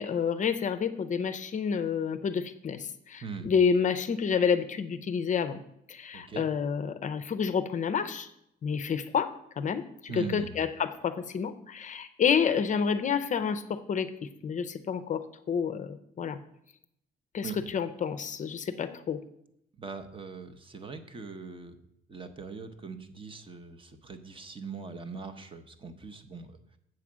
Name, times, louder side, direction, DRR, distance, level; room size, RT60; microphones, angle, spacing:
voice 1, 0.0-5.6 5.9-8.3 8.6-16.4 17.3-19.2, left 6 dB, 35° left, 12 dB, 0.5 m, -29 dB
voice 2, 6.1-6.5 10.1-10.5 17.4-17.6 19.8-21.8 22.1-26.8, right 5 dB, 25° right, 9 dB, 0.7 m, -41 dB
7.7 x 4.9 x 7.2 m, 0.76 s
cardioid pair, 160°, 21 cm